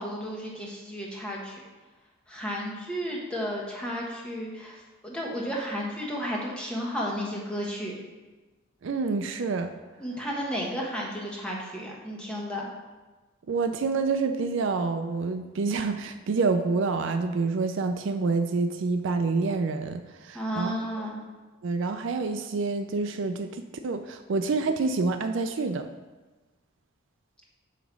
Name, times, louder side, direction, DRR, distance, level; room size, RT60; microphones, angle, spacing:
voice 1, 0.0-1.6 2.3-8.0 10.0-12.7 20.3-21.2, equal, 5° left, -4 dB, 1.2 m, -33 dB
voice 2, 8.8-9.7 13.5-20.8 21.6-25.9, right 4 dB, 60° right, 8 dB, 0.4 m, -27 dB
9.0 x 3.1 x 6.0 m, 1.2 s
head